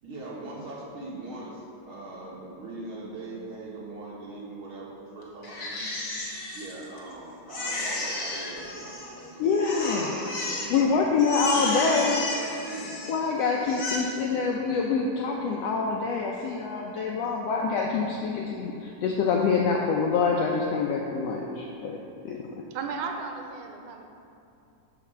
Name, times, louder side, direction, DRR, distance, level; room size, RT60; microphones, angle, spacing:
voice 1, 0.0-5.9 6.5-9.5 10.0-10.9 11.4-12.9 14.3-14.5, right 2 dB, 50° right, -5 dB, 2.0 m, -41 dB
Crying sobbing, 5.4-7.1 7.5-9.3 9.6-10.8 11.2-13.3 13.6-14.0, left 2 dB, 60° left, 0.9 m, -33 dB
voice 2, 9.4-10.1 10.7-12.2 13.1-22.0 22.2-22.4, left 5 dB, 80° left, 0 dB, 1.5 m, -26 dB
voice 3, 22.7-24.0, right 5 dB, 85° right, 4 dB, 2.2 m, -34 dB
13.0 x 5.0 x 4.4 m, 2.7 s
omnidirectional pair, 3.5 m